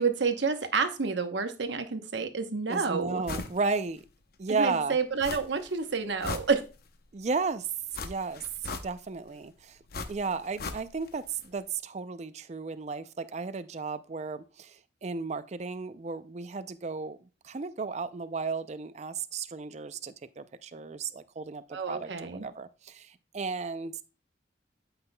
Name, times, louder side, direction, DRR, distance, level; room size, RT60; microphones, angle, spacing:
voice 1, 0.0-3.2 4.5-6.6 21.7-22.5, right 5 dB, 70° right, 0.9 m, -29 dB
voice 2, 2.7-4.0 4.4-5.0 7.1-7.7 8.0-8.4 8.8-9.8 10.1-17.2 17.4-24.0, right 4 dB, 35° right, 0.4 m, -34 dB
sound 1, 3.3-3.6 4.0-4.1 5.2-5.7 6.0-7.0 7.9-9.2 9.9-11.2 11.4-11.5, left 3 dB, 50° left, 0.7 m, -38 dB
11.5 x 5.6 x 2.2 m
head